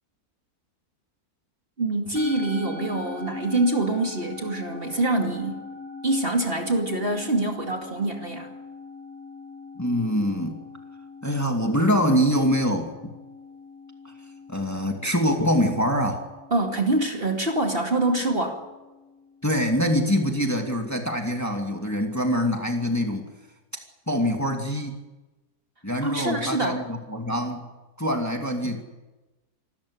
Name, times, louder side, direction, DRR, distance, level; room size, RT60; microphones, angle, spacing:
voice 1, 1.8-5.6 6.0-8.5 16.5-18.6 26.0-26.8, right 2 dB, 35° right, 3 dB, 2.6 m, -25 dB
Musical instrument, 2.2-20.7, left 3 dB, 60° left, 4.6 m, -42 dB
voice 2, 9.8-10.6 11.2-12.9 14.5-16.2 19.4-23.3 24.1-25.0 25.8-27.7 28.0-28.8, equal, 10° left, 2 dB, 2.5 m, -24 dB
26.5 x 13.5 x 9.9 m, 1.1 s
omnidirectional pair, 1.6 m